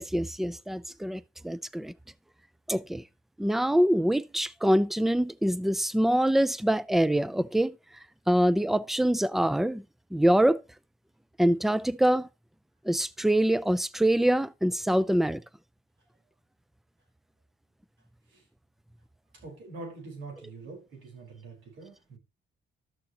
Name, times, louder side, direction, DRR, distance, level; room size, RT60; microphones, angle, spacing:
voice 1, 0.0-1.9 2.7-3.0 3.4-7.7 8.3-9.8 10.1-10.6 11.4-12.3 12.9-15.4, right 1 dB, ahead, 0.4 m, -25 dB
voice 2, 19.3-22.2, right 3 dB, 75° right, 4.5 m, -44 dB
12.5 x 6.7 x 2.9 m
cardioid pair, 90°, 20 cm